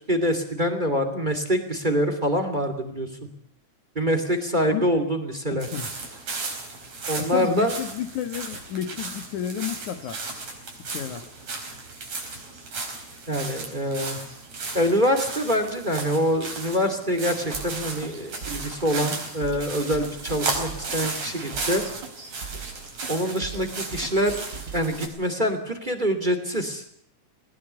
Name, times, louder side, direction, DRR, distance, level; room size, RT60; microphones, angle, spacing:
voice 1, 0.1-3.3 3.9-5.7 7.1-7.7 13.3-14.2 14.7-21.8 23.1-24.4 24.7-26.8, equal, 15° right, 7 dB, 2.7 m, -25 dB
voice 2, 5.5-5.9 7.2-10.2 10.9-11.2, left 10 dB, 90° left, 10 dB, 3.1 m, -31 dB
sound 1, 5.6-25.1, right 3 dB, 65° right, 5.8 m, -35 dB
sound 2, 17.5-25.5, right 6 dB, 40° right, 2.3 m, -40 dB
20.0 x 20.0 x 8.0 m, 0.68 s
omnidirectional pair, 3.3 m